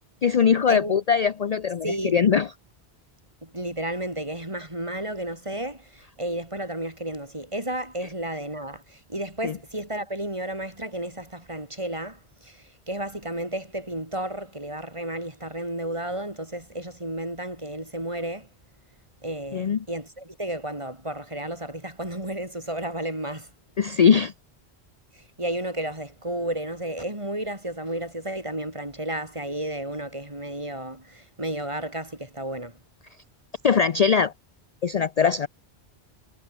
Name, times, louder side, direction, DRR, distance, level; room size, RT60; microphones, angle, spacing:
voice 1, 0.2-2.5 9.4-9.6 19.5-19.8 23.8-24.3 33.6-34.3 34.8-35.5, left 6 dB, 45° left, 0.6 m, -21 dB
voice 2, 1.8-2.2 3.4-18.5 19.2-23.5 25.1-32.8, right 1 dB, 30° right, 4.3 m, -32 dB
omnidirectional pair, 1.1 m